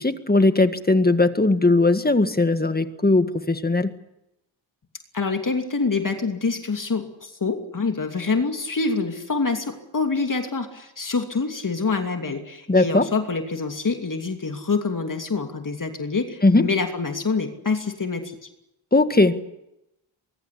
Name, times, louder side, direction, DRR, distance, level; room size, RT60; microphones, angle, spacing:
voice 1, 0.0-3.9 12.7-13.1 16.4-16.7 18.9-19.6, left 2 dB, 20° left, 9 dB, 1.8 m, -19 dB
voice 2, 5.1-18.4, left 4 dB, 40° left, 5 dB, 2.8 m, -26 dB
23.5 x 22.5 x 8.4 m, 0.86 s
wide cardioid pair, 100°, 47 cm